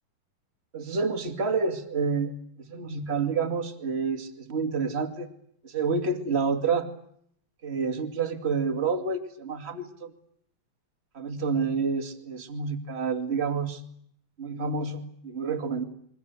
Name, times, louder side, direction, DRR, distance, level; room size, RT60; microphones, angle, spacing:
voice 1, 0.7-2.3 2.6-5.3 5.6-6.9 7.6-10.1 11.1-13.8 14.4-15.8, right 4 dB, 20° right, 7 dB, 2.2 m, -28 dB
28.5 x 24.0 x 8.3 m, 0.68 s
omnidirectional pair, 4.1 m